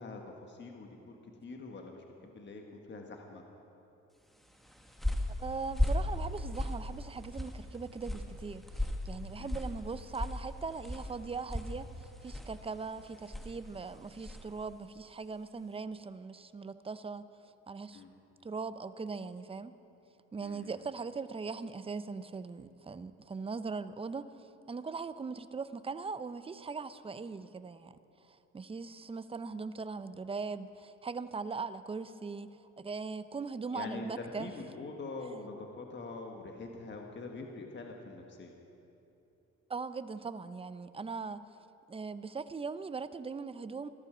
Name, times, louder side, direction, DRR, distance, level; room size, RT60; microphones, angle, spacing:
voice 1, 0.0-3.4 9.4-9.5 17.9-18.1 20.4-20.8 33.7-38.5, left 3 dB, 35° left, 2 dB, 1.4 m, -44 dB
sound 1, 4.5-14.6, left 1 dB, ahead, 1.2 m, -37 dB
voice 2, 5.4-18.0 18.4-19.7 20.3-27.9 28.2-34.5 39.7-41.4 41.9-43.9, right 4 dB, 20° right, 13 dB, 0.5 m, -40 dB
15.0 x 13.0 x 5.0 m, 2.9 s
cardioid pair, 90°, 30 cm